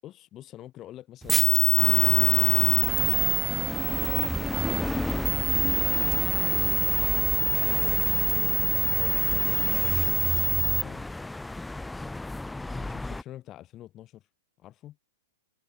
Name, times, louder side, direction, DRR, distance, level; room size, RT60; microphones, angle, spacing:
voice 1, 0.0-3.2 4.3-4.5 4.8-6.3 8.3-11.1 12.6-14.3 14.6-15.0, left 13 dB, 30° left, 7.3 m, -46 dB
sound 1, 1.3-10.8, right 4 dB, 10° right, 0.7 m, -24 dB
sound 2, 1.8-13.2, left 2 dB, 5° left, 1.2 m, -33 dB
hypercardioid pair, 125°, 0 cm